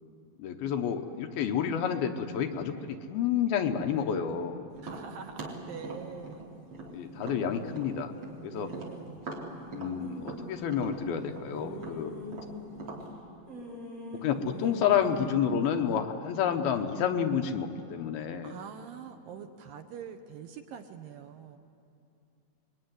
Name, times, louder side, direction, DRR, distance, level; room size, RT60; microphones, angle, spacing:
voice 1, 0.4-4.6 6.9-8.1 8.4-8.7 9.7-12.1 14.2-18.5, left 8 dB, 70° left, 5 dB, 2.8 m, -29 dB
Tap, 4.8-8.4 8.7-13.1, right 3 dB, 35° right, 3.8 m, -42 dB
voice 2, 4.8-6.5 8.5-9.2 14.5-14.7 18.4-21.6, right 7 dB, 70° right, 6 dB, 2.4 m, -44 dB
sound 1, 10.0-10.6 11.2-13.1 13.5-16.0, left 1 dB, 20° right, 6.4 m, -43 dB
26.0 x 22.5 x 9.7 m, 2.6 s
omnidirectional pair, 4.7 m